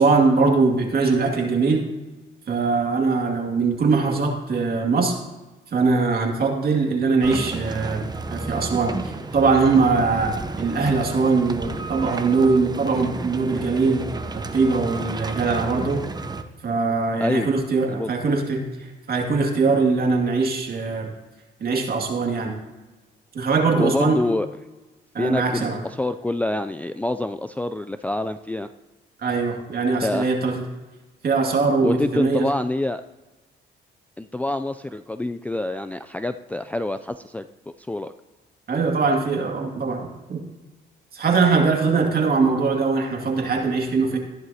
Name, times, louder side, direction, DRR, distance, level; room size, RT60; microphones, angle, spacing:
voice 1, 0.0-1.8 2.5-5.2 5.7-14.1 14.3-16.0 16.6-21.1 21.6-22.6 23.3-24.2 25.1-25.8 29.2-30.6 31.2-32.5 38.7-40.4 41.1-44.2, right 4 dB, 50° right, 1 dB, 2.2 m, -21 dB
sound 1, 7.2-16.4, right 3 dB, 20° right, 0.8 m, -32 dB
voice 2, 23.8-24.5 25.2-28.7 30.0-30.3 31.8-33.0 34.2-37.5 37.9-38.1, left 2 dB, 5° left, 9 dB, 0.3 m, -26 dB
14.0 x 11.0 x 2.8 m, 1.2 s
cardioid pair, 90°, 20 cm